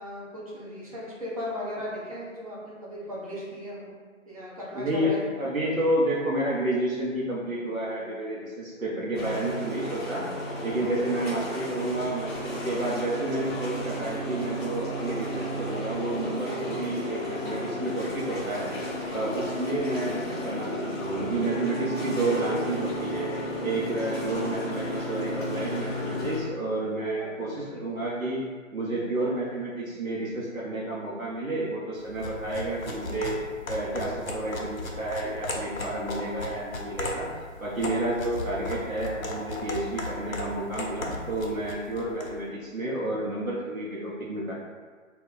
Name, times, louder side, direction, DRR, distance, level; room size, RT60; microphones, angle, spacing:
voice 1, 0.0-3.9 4.3-5.4 27.2-28.0, left 1 dB, 25° right, -7 dB, 0.6 m, -37 dB
voice 2, 4.7-10.3 10.6-18.7 19.1-23.3 23.6-28.4 28.7-33.4 33.7-37.3 37.6-44.6, right 1 dB, 80° right, -5 dB, 0.8 m, -30 dB
sound 1, 9.1-26.4, equal, 20° left, 0.8 m, -33 dB
sound 2, 32.1-42.4, left 2 dB, 85° left, 0.6 m, -36 dB
2.2 x 2.1 x 3.7 m, 1.5 s
figure-of-eight pair, 135°, 40 cm